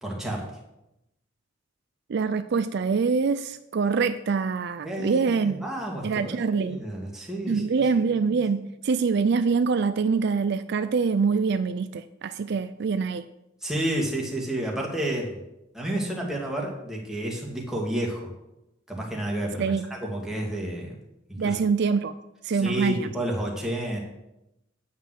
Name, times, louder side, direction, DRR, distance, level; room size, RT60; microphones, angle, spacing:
voice 1, 0.0-0.5 4.8-7.8 8.3-8.4 13.6-15.4 15.7-18.3 18.9-20.9 21.3-21.6 22.5-24.0, right 1 dB, 5° right, -2 dB, 2.3 m, -30 dB
voice 2, 2.1-5.6 6.0-6.8 7.5-13.2 19.6-19.9 21.4-22.2 22.4-23.1, right 5 dB, 55° right, 12 dB, 0.4 m, -25 dB
9.5 x 5.6 x 7.8 m, 0.90 s
head